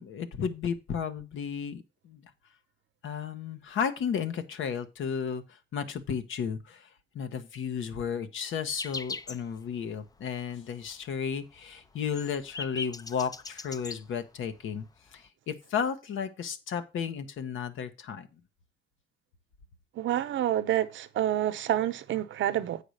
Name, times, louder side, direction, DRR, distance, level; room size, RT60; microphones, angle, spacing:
voice 1, 0.0-2.2 3.0-5.4 5.7-6.9 7.1-14.8 15.1-18.3, left 7 dB, 75° left, 1.2 m, -33 dB
sound 1, 8.7-9.5 9.8-9.9 10.2-10.5 10.9-11.0 11.3-14.0 14.8-14.9 15.1-15.3, left 4 dB, 20° left, 0.4 m, -39 dB
voice 2, 20.0-22.8, right 12 dB, 70° right, 0.8 m, -28 dB
8.4 x 4.9 x 6.4 m
cardioid pair, 140°, 20 cm